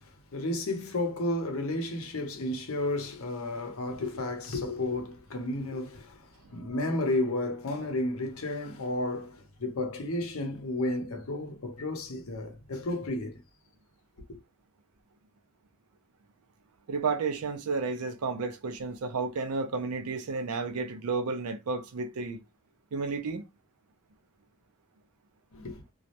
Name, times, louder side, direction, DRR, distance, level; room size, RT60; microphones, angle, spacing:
voice 1, 0.3-13.4 25.5-25.8, left 2 dB, 75° left, 0.7 m, -32 dB
voice 2, 16.9-22.4 22.9-23.4, right 4 dB, 85° right, 0.5 m, -32 dB
2.3 x 2.0 x 2.8 m
head